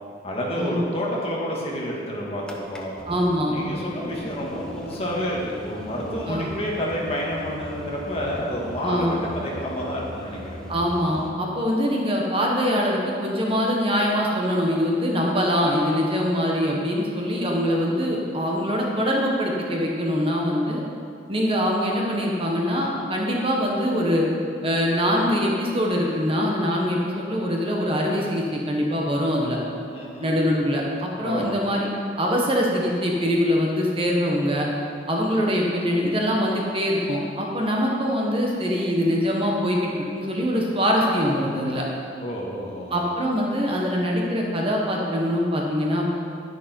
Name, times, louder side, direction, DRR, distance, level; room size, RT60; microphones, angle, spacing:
voice 1, 0.2-2.9 3.5-10.6 29.9-30.4 31.2-31.5 42.2-42.9, equal, 35° left, -4 dB, 2.1 m, -29 dB
sound 1, 2.4-11.3, left 1 dB, 5° left, 0.9 m, -39 dB
voice 2, 3.1-3.5 6.3-6.5 8.8-9.2 10.7-20.8 21.3-24.3 24.6-29.6 30.2-31.9 32.2-34.7 35.1-41.8 42.9-46.1, equal, 30° right, -2 dB, 1.4 m, -23 dB
10.5 x 10.5 x 4.6 m, 2.4 s
head